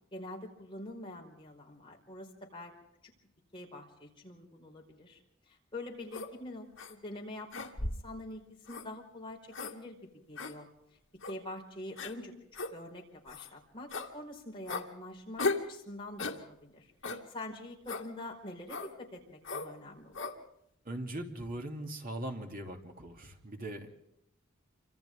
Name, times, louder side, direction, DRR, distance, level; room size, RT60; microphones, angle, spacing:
voice 1, 0.1-2.7 3.5-5.2 5.5-10.0 10.3-10.7 11.3-12.3 12.7-15.4 15.7-16.9 17.3-20.3, left 1 dB, 25° left, -1 dB, 4.8 m, -45 dB
sound 1, 6.1-6.3 6.8-6.9 7.5-8.1 8.7-8.9 9.5-9.7 10.4-10.5 11.2-11.4 12.0-12.1 12.5-12.7 13.3-13.5 13.9-14.1 14.7-14.9 15.4-15.7 16.2-16.4 17.0-17.2 17.9-18.1 18.7-18.9 19.4-19.7 20.1-20.4, left 3 dB, 70° left, 2.1 m, -36 dB
voice 2, 20.8-23.9, right 1 dB, 45° right, 2 dB, 2.9 m, -40 dB
28.5 x 26.0 x 3.7 m, 0.82 s
head